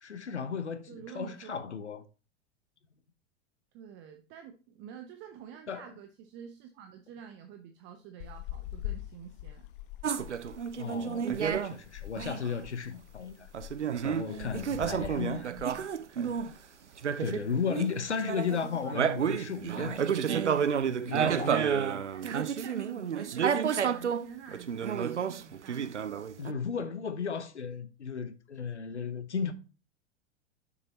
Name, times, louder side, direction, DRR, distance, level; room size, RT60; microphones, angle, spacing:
voice 1, 0.0-2.0 5.7-5.8 10.8-13.5 14.0-15.5 17.2-20.0 21.0-21.6 26.4-29.5, left 6 dB, 80° left, 0.9 m, -35 dB
voice 2, 0.9-1.7 3.7-9.7 15.2-15.9 17.4-17.7 18.4-19.2 22.1-26.0, right 8 dB, 35° right, 0.8 m, -48 dB
sound 1, 8.2-16.7 17.0-17.2 17.6-18.4 18.7-19.1 19.4-19.5 19.6-20.1 20.6-21.1, left 14 dB, 50° left, 0.7 m, -45 dB
sound 2, 10.0-11.8 12.2-12.5 13.5-16.5 17.0-18.0 18.2-24.2 24.5-26.5, right 7 dB, 85° right, 0.5 m, -30 dB
6.9 x 6.7 x 2.9 m
figure-of-eight pair, 90°, 34 cm